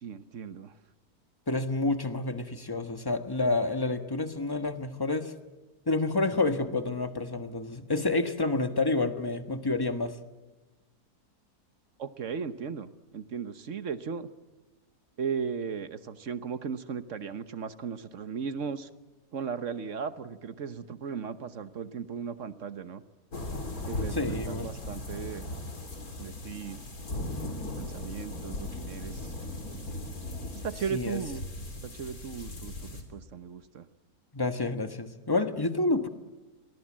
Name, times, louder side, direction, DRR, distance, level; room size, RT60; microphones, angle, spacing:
voice 1, 0.0-0.7 12.0-14.3 15.2-18.9 19.3-23.0 23.9-25.5 26.2-26.8 27.6-29.3 30.6-31.5 31.8-33.9, right 6 dB, 55° right, 11 dB, 1.3 m, -36 dB
voice 2, 1.5-5.3 5.9-10.2 24.1-24.7 30.9-31.2 34.3-36.1, left 2 dB, 15° left, 7 dB, 1.3 m, -29 dB
sound 1, 23.3-33.0, left 1 dB, 65° left, 3.8 m, -38 dB
30.0 x 22.5 x 7.5 m, 1.2 s
omnidirectional pair, 1.7 m